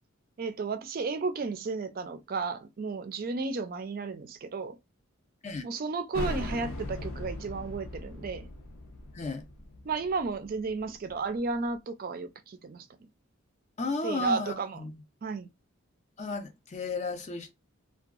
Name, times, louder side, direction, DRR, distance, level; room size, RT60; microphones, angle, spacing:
voice 1, 0.4-4.8 5.6-8.5 9.8-12.9 14.0-14.8 15.2-15.5, right 4 dB, 45° right, 0.3 m, -33 dB
sound 1, 6.1-11.5, left 1 dB, 80° left, 0.6 m, -39 dB
voice 2, 9.1-9.5 13.8-15.0 16.2-17.5, left 3 dB, 35° left, 0.4 m, -34 dB
2.6 x 2.3 x 2.3 m
head